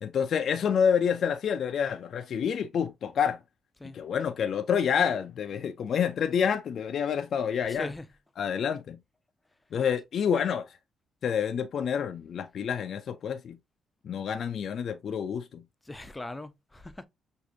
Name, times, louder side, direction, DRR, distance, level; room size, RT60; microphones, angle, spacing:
voice 1, 0.0-3.4 3.9-7.9 8.4-9.0 9.7-10.8 11.2-13.6 14.0-15.6, left 7 dB, 60° left, 0.4 m, -28 dB
voice 2, 7.6-8.1 15.8-17.0, left 2 dB, 15° left, 0.7 m, -40 dB
6.1 x 2.6 x 2.7 m
cardioid pair, 90°, 0 cm